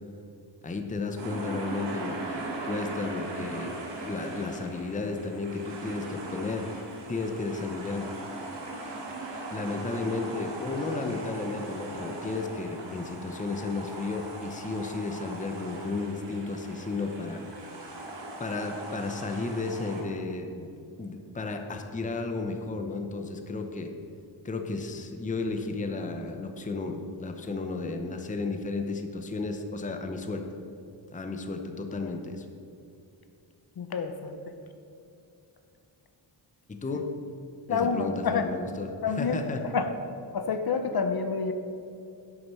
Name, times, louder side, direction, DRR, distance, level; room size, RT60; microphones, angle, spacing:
voice 1, 0.6-3.8 4.0-6.8 7.1-8.1 9.5-17.4 18.4-20.7 21.0-23.9 24.4-30.4 31.1-32.5 36.7-37.1 37.7-38.9 39.2-39.6, left 3 dB, 15° left, 5 dB, 0.6 m, -33 dB
sound 1, 1.2-20.0, right 2 dB, 65° right, 2.0 m, -39 dB
voice 2, 33.8-34.4 37.7-38.5 39.0-39.4 39.6-39.9 40.3-41.5, left 5 dB, 55° left, 7 dB, 0.7 m, -28 dB
11.0 x 6.5 x 5.4 m, 2.6 s
wide cardioid pair, 155°, 46 cm